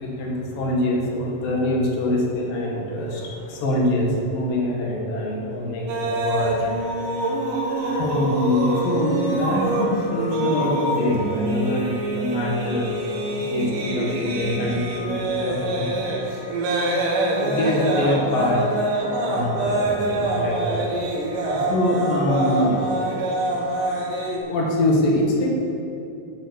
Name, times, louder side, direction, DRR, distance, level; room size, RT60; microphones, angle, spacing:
voice 1, 0.0-6.6 7.6-12.9 13.5-15.9 17.2-18.7 19.3-20.9 21.5-22.8 24.5-25.5, left 1 dB, 75° left, -2 dB, 3.4 m, -24 dB
sound 1, 5.9-24.4, right 2 dB, 70° right, 3.0 m, -25 dB
11.0 x 7.1 x 8.4 m, 2.7 s
omnidirectional pair, 4.1 m